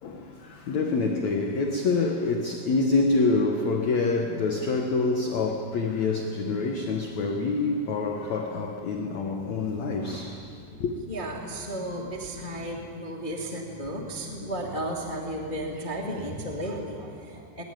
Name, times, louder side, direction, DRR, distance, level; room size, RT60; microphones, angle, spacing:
voice 1, 0.0-10.5 10.8-10.9, left 3 dB, 60° left, 2.1 m, -26 dB
voice 2, 9.0-9.6 11.1-17.6, right 1 dB, 20° left, 1.5 m, -34 dB
21.0 x 20.5 x 9.3 m
omnidirectional pair, 4.7 m